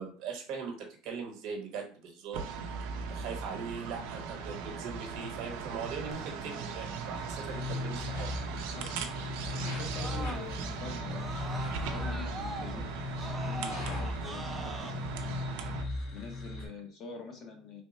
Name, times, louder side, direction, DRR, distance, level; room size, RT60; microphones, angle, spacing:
voice 1, 0.0-2.4 3.1-8.3, right 5 dB, 55° right, 2 dB, 1.0 m, -40 dB
sound 1, 2.3-15.8, right 5 dB, 75° right, 0.5 m, -39 dB
Screaming, 6.1-10.7 11.1-14.9, right 2 dB, 5° right, 0.3 m, -45 dB
sound 2, 7.2-16.7, left 2 dB, 70° left, 1.6 m, -38 dB
voice 2, 8.8-9.3 9.6-11.3 11.9-12.9 13.1-15.4 16.1-17.8, left 4 dB, 35° left, 2 dB, 0.7 m, -45 dB
3.5 x 2.1 x 4.2 m, 0.41 s
cardioid pair, 165°, 0 cm